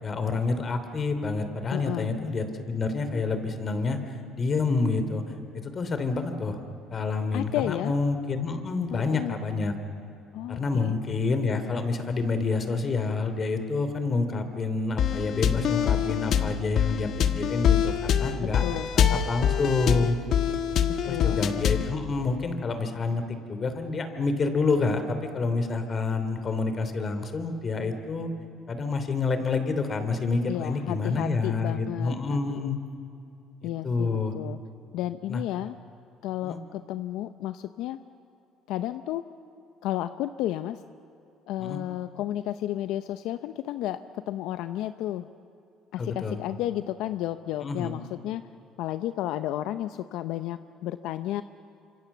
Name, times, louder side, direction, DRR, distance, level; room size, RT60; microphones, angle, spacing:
voice 1, 0.0-4.0 4.4-5.2 5.5-6.6 6.9-9.7 10.5-17.1 17.3-18.7 18.9-20.2 21.0-23.2 23.5-28.3 28.7-32.8 33.8-34.3 35.3-35.4 36.4-36.6 41.6-41.8 46.0-46.4 47.6-48.0, left 4 dB, 35° left, 9 dB, 2.9 m, -28 dB
voice 2, 1.7-2.1 7.3-7.9 8.9-9.3 10.3-10.9 18.4-18.9 21.0-21.4 30.5-32.7 33.6-34.6 34.9-35.8 36.2-38.0 38.7-39.2 39.8-40.8 41.5-45.3 45.9-48.4 48.8-51.4, left 13 dB, 75° left, 11 dB, 0.6 m, -32 dB
sound 1, 15.0-21.9, left 8 dB, 55° left, 1.4 m, -25 dB
26.5 x 25.5 x 7.3 m, 2.7 s
cardioid pair, 105°, 0 cm